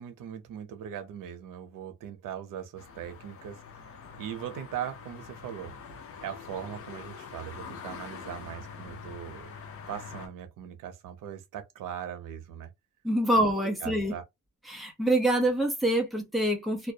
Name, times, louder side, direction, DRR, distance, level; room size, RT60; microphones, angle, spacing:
voice 1, 0.0-5.7 6.2-9.5 9.9-12.7 13.3-13.4 13.8-14.2, right 9 dB, 85° right, 0.7 m, -40 dB
sound 1, 2.8-10.3, left 6 dB, 50° left, 0.6 m, -44 dB
voice 2, 13.0-14.1 14.7-16.9, right 1 dB, ahead, 0.6 m, -26 dB
2.2 x 2.1 x 2.6 m
cardioid pair, 170°, 31 cm